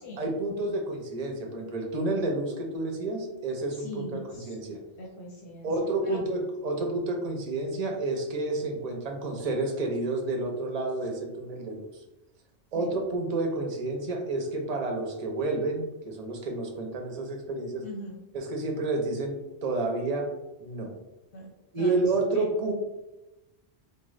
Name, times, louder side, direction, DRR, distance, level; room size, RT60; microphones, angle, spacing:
voice 1, 0.2-4.8 5.6-12.0 12.7-17.8 18.3-20.3 20.6-20.9 21.7-22.7, right 2 dB, 45° right, 2 dB, 0.6 m, -30 dB
voice 2, 3.7-4.6 5.0-5.7 6.0-6.2 12.7-12.9 17.8-18.2 21.3-21.5 21.8-22.1 22.3-22.4, left 1 dB, 80° left, -3 dB, 1.0 m, -41 dB
3.7 x 2.0 x 3.1 m, 1.0 s
omnidirectional pair, 1.1 m